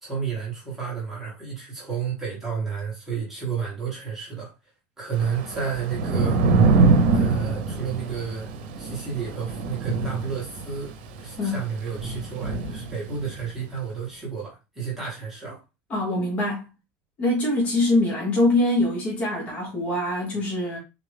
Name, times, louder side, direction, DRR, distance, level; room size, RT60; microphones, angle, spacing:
voice 1, 0.0-4.5 5.0-6.4 7.1-8.5 8.8-15.6, right 6 dB, 5° right, 1.2 m, -31 dB
Thunder / Rain, 5.1-13.5, right 4 dB, 75° right, 0.8 m, -24 dB
voice 2, 15.9-16.7 17.2-20.8, left 2 dB, 25° left, 1.1 m, -23 dB
3.7 x 2.5 x 3.3 m
cardioid pair, 175°, 5 cm